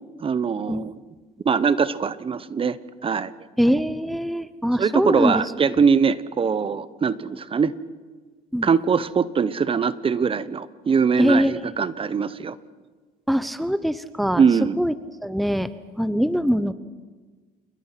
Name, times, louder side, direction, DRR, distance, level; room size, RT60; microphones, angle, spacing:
voice 1, 0.2-0.9 1.4-2.8 3.0-3.3 4.8-7.7 8.6-12.6 14.4-14.8, right 6 dB, 35° right, 16 dB, 1.0 m, -22 dB
voice 2, 3.6-5.4 8.5-8.7 11.2-11.6 13.3-14.4 14.8-14.9 15.2-15.7 16.0-16.7, equal, ahead, 13 dB, 0.8 m, -22 dB
29.0 x 21.0 x 5.9 m, 1.4 s
cardioid pair, 110°, 17 cm